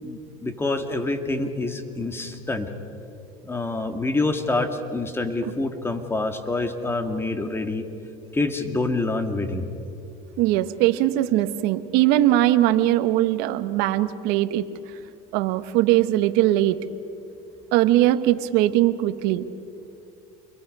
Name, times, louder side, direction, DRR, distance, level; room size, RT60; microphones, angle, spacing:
voice 1, 0.0-2.7 3.4-7.8 8.3-9.6, left 2 dB, 15° left, 7 dB, 2.0 m, -26 dB
voice 2, 10.4-14.7 15.3-16.8 17.7-19.5, right 14 dB, 65° right, 11 dB, 1.1 m, -20 dB
28.5 x 22.5 x 5.4 m, 2.7 s
supercardioid pair, 110°, 18 cm